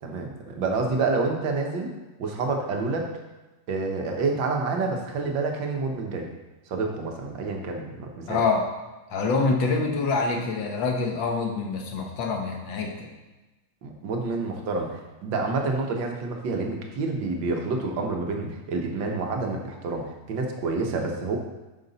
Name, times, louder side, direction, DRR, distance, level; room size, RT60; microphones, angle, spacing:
voice 1, 0.0-1.9 2.2-3.1 3.7-6.3 6.7-8.4 13.8-21.4, right 3 dB, 60° right, 2 dB, 1.3 m, -28 dB
voice 2, 8.3-8.6 9.1-13.1, left 4 dB, 60° left, 2 dB, 1.3 m, -26 dB
9.5 x 6.3 x 4.0 m, 1.1 s
omnidirectional pair, 3.3 m